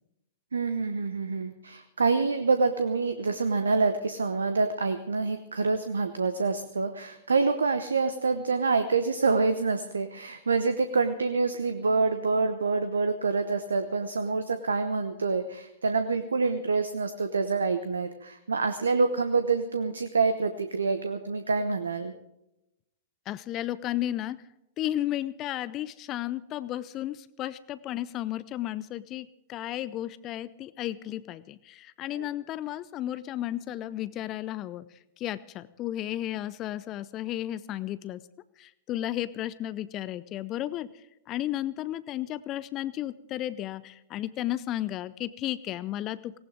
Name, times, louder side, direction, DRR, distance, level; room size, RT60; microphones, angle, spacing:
voice 1, 0.5-22.1 32.1-32.3, right 4 dB, 75° right, 10 dB, 0.9 m, -27 dB
voice 2, 23.3-24.4 24.8-38.2 38.6-46.4, left 13 dB, 35° left, 17 dB, 0.6 m, -33 dB
18.5 x 18.0 x 3.7 m, 0.89 s
figure-of-eight pair, 100°, 0 cm